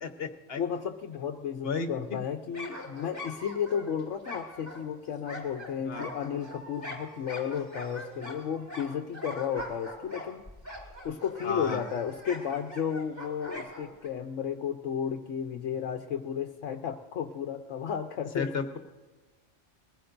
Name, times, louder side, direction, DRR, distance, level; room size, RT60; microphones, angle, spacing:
voice 1, 0.0-0.6 1.6-2.2 5.8-6.1 11.4-11.8 18.3-18.8, left 5 dB, 55° left, 7 dB, 1.2 m, -33 dB
voice 2, 0.6-10.4 11.0-18.5, left 8 dB, 85° left, 4 dB, 1.1 m, -33 dB
sound 1, 2.5-14.1, left 1 dB, 25° left, 3.2 m, -42 dB
21.0 x 15.5 x 2.6 m, 1.2 s
omnidirectional pair, 1.2 m